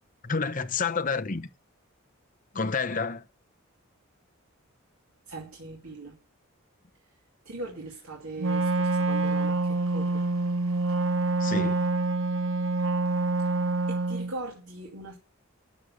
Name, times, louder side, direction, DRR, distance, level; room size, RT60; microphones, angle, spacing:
voice 1, 0.2-1.5 2.5-3.2 11.4-11.9, left 4 dB, 40° left, 0.9 m, -29 dB
voice 2, 5.3-6.2 7.5-10.2 13.9-15.2, right 2 dB, 90° right, 2.5 m, -40 dB
Wind instrument woodwind instrument, 8.4-14.3, right 2 dB, 70° right, 0.7 m, -26 dB
12.5 x 6.6 x 7.2 m
head